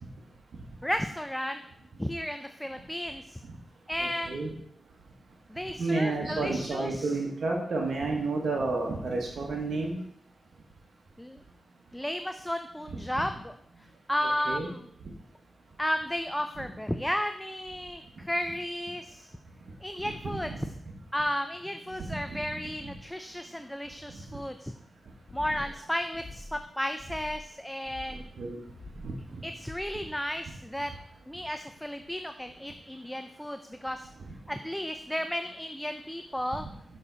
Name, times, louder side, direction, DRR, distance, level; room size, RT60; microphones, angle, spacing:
voice 1, 0.8-1.6 2.0-3.4 3.9-4.4 5.5-7.2 11.2-11.4 11.9-13.5 14.1-14.8 15.8-19.3 19.8-20.7 21.1-24.7 25.3-28.2 29.4-30.9 31.3-34.1 34.5-36.7, equal, 5° left, 7 dB, 0.5 m, -33 dB
voice 2, 4.0-4.5 5.8-10.0 14.5-14.7 20.0-20.4 22.1-22.4 25.5-25.6 28.4-28.6 29.0-29.1, right 3 dB, 75° right, -1 dB, 1.2 m, -30 dB
sound 1, 25.3-25.8 26.1-26.6 27.0-27.5 27.9-28.3 28.7-29.1 29.6-30.0, left 2 dB, 55° left, 1.6 m, -45 dB
6.7 x 6.0 x 4.0 m, 0.70 s
cardioid pair, 55°, 0 cm